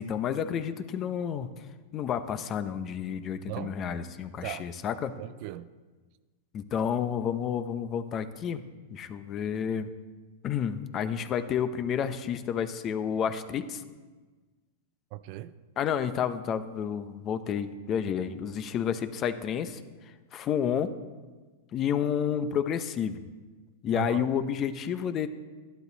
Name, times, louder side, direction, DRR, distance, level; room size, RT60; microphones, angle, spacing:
voice 1, 0.0-1.5 1.9-5.1 6.5-8.6 8.9-9.9 10.4-13.8 15.8-19.8 20.3-20.9 21.7-23.2 23.8-25.3, left 8 dB, 30° left, 0.7 m, -30 dB
voice 2, 3.4-3.8 4.4-4.7 5.1-5.7 15.1-15.6 23.9-24.3, right 14 dB, 50° right, 0.5 m, -38 dB
11.5 x 11.5 x 4.0 m
hypercardioid pair, 125°, 0 cm